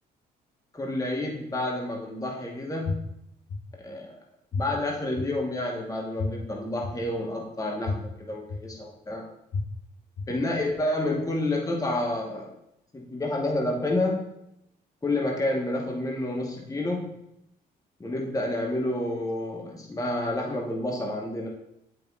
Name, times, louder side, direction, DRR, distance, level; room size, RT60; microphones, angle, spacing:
voice 1, 0.7-3.1 3.8-4.2 4.5-9.2 10.3-12.5 12.9-14.3 15.0-17.1 18.0-21.5, left 1 dB, 15° left, -1 dB, 1.2 m, -29 dB
sound 1, 2.8-2.9 3.5-3.6 4.5-4.6 5.2-5.3 6.2-6.3 6.8-6.9 7.8-7.9 8.5-8.6 9.5-9.6 10.2-10.3, left 5 dB, 75° left, 2.1 m, -29 dB
8.2 x 4.9 x 2.3 m, 0.80 s
hypercardioid pair, 55°, 21 cm